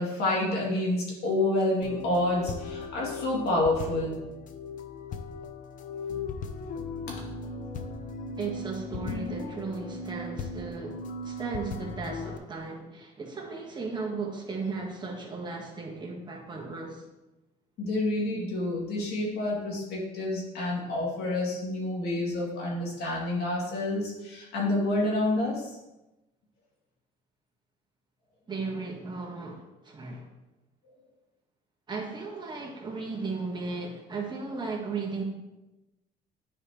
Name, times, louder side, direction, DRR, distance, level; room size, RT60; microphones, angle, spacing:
voice 1, 0.0-4.1 17.8-25.8, left 2 dB, 70° left, -3 dB, 2.7 m, -28 dB
sound 1, 1.8-12.4, left 3 dB, 50° left, 0.6 m, -37 dB
voice 2, 8.4-17.0 28.5-30.3 31.9-35.2, right 4 dB, 25° right, -1 dB, 1.5 m, -36 dB
9.6 x 4.9 x 3.1 m, 1.0 s
cardioid pair, 110°, 17 cm